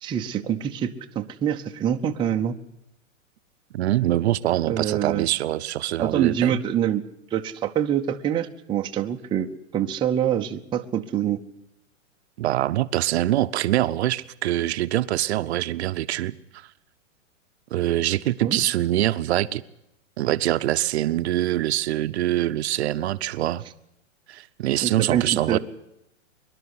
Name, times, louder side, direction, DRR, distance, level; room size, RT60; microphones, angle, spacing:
voice 1, 0.0-2.6 4.6-5.3 6.0-7.0 7.3-9.5 9.7-11.4 18.4-18.6 24.8-25.6, right 9 dB, 10° right, 3 dB, 0.7 m, -25 dB
voice 2, 3.7-6.6 12.4-16.7 17.7-19.6 20.2-23.6 24.3-25.6, right 14 dB, 55° right, 12 dB, 0.8 m, -24 dB
23.0 x 11.5 x 9.7 m, 0.83 s
hypercardioid pair, 135°, 39 cm